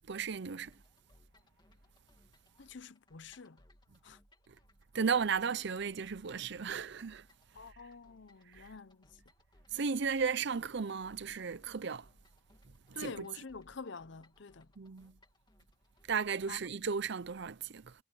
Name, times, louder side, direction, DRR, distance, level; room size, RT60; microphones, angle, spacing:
voice 1, 0.1-0.7 4.9-7.2 8.5-8.7 9.7-12.1 12.9-13.3 14.8-15.1 16.1-17.9, right 6 dB, 60° right, 0.6 m, -35 dB
sound 1, 0.6-16.5, left 1 dB, 20° left, 2.7 m, -66 dB
voice 2, 2.6-3.6 4.0-4.2 7.5-9.2 12.9-14.7 16.5-16.6, left 4 dB, 60° left, 0.8 m, -47 dB
head